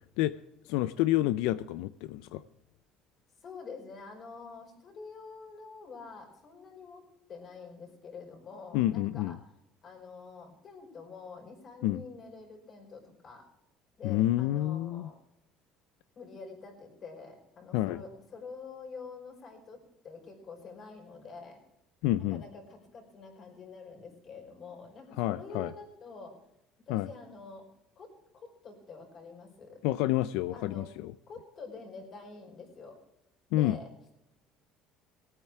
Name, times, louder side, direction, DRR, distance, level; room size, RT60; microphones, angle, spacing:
voice 1, 0.6-2.4 8.7-9.4 11.8-12.0 14.0-15.1 17.7-18.0 22.0-22.4 25.2-25.7 26.9-27.1 29.8-31.1 33.5-33.8, left 15 dB, 85° left, 14 dB, 0.4 m, -29 dB
voice 2, 3.4-7.0 7.3-9.4 9.8-13.4 14.0-15.2 16.1-19.8 20.0-21.6 22.2-26.3 26.9-27.6 28.0-28.1 28.3-29.8 30.5-30.9 31.3-32.9 33.5-33.9, left 4 dB, 40° left, 2 dB, 4.9 m, -47 dB
19.5 x 8.9 x 4.7 m, 0.87 s
cardioid pair, 145°, 0 cm